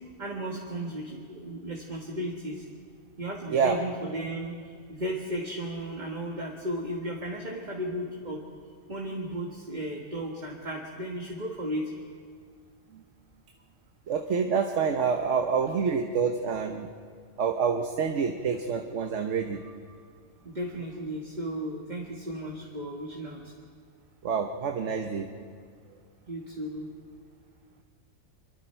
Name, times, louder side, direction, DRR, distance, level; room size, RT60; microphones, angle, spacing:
voice 1, 0.2-2.7 3.2-8.4 8.9-11.9 20.5-23.5 26.3-26.9, equal, 35° right, -1 dB, 1.9 m, -35 dB
voice 2, 14.1-16.9 17.4-19.6 24.2-25.3, right 6 dB, 65° right, 4 dB, 1.3 m, -27 dB
27.0 x 23.0 x 4.5 m, 2.1 s
omnidirectional pair, 1.4 m